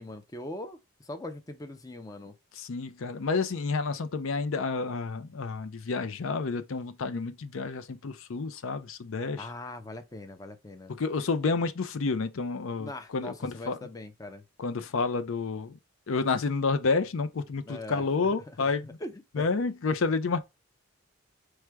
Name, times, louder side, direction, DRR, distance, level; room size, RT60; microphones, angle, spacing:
voice 1, 0.0-2.3 9.4-10.9 12.8-14.4 17.7-19.5, left 1 dB, 15° left, 0.4 m, -41 dB
voice 2, 2.6-9.5 11.0-13.8 14.6-15.8 16.1-19.0 19.3-20.4, left 4 dB, 70° left, 0.5 m, -30 dB
4.7 x 2.2 x 4.5 m
head